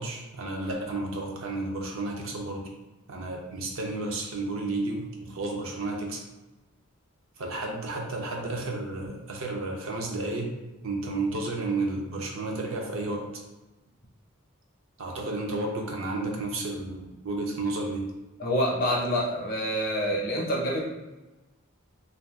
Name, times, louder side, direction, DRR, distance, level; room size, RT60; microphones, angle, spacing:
voice 1, 0.0-2.7 3.1-6.2 7.4-10.5 10.8-13.3 15.0-18.1, right 2 dB, 60° right, 0 dB, 0.6 m, -32 dB
voice 2, 18.4-20.8, equal, 40° left, -4 dB, 0.8 m, -27 dB
2.6 x 2.3 x 3.4 m, 1.1 s
head